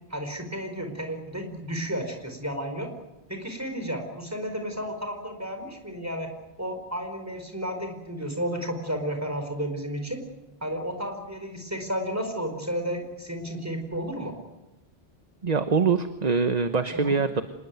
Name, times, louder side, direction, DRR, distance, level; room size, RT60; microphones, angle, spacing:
voice 1, 0.1-2.9 3.3-6.3 6.6-10.2 10.6-14.3 16.9-17.2, equal, 15° right, 5 dB, 4.7 m, -32 dB
voice 2, 15.4-17.4, right 5 dB, 40° right, 9 dB, 1.1 m, -24 dB
26.0 x 20.5 x 9.4 m, 0.99 s
omnidirectional pair, 1.1 m